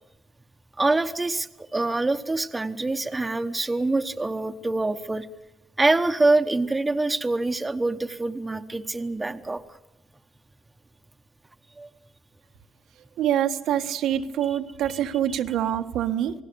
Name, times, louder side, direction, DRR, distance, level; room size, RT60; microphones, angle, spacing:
voice 1, 0.8-5.3 5.8-9.8 11.8-11.9 14.5-14.6, right 2 dB, 15° right, 7 dB, 1.1 m, -25 dB
voice 2, 13.2-16.3, right 10 dB, 90° right, 5 dB, 1.5 m, -25 dB
28.0 x 19.0 x 7.0 m, 0.98 s
cardioid pair, 145°, 0 cm